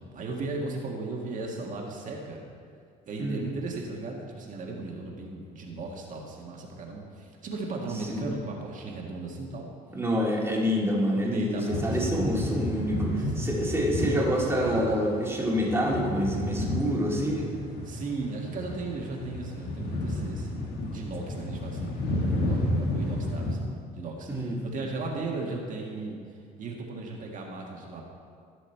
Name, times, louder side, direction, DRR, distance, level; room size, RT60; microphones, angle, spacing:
voice 1, 0.0-2.4 3.1-9.7 11.1-12.2 13.4-13.6 17.8-28.0, right 3 dB, 50° right, -1 dB, 1.7 m, -36 dB
voice 2, 9.9-17.5 24.3-24.6, equal, 15° right, -3 dB, 2.1 m, -27 dB
sound 1, 11.7-23.5, left 1 dB, 70° left, 1.7 m, -31 dB
15.0 x 6.4 x 4.5 m, 2.2 s
cardioid pair, 110°, 17 cm